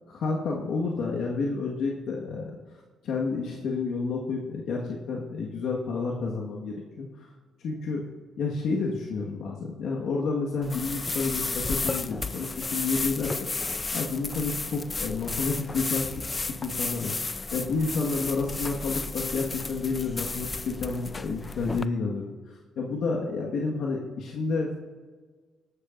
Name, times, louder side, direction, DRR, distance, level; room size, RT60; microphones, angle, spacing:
voice 1, 0.1-2.6 3.0-7.1 7.6-8.0 8.4-13.5 13.9-16.1 16.4-17.1 17.5-22.2 22.8-24.8, left 4 dB, 75° left, -2 dB, 1.6 m, -30 dB
sound 1, 10.6-21.9, left 3 dB, 25° left, 0.5 m, -33 dB
18.0 x 13.0 x 2.6 m, 1.4 s
cardioid pair, 90°, 0 cm